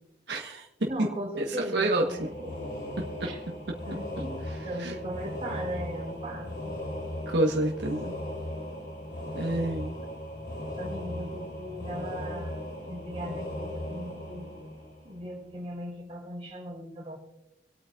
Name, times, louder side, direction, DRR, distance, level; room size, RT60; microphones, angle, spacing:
voice 1, 0.3-0.7 1.4-2.3 3.0-3.1 4.8-4.9 7.3-8.1 9.4-9.9, right 1 dB, 80° right, -1 dB, 1.4 m, -28 dB
voice 2, 0.9-2.6 3.2-3.4 3.8-6.8 10.0-10.1 10.8-14.5 15.0-17.2, right 1 dB, 30° right, -1 dB, 4.1 m, -38 dB
sound 1, 2.0-15.5, left 1 dB, 65° left, 4.0 m, -37 dB
26.5 x 8.8 x 2.6 m, 0.88 s
head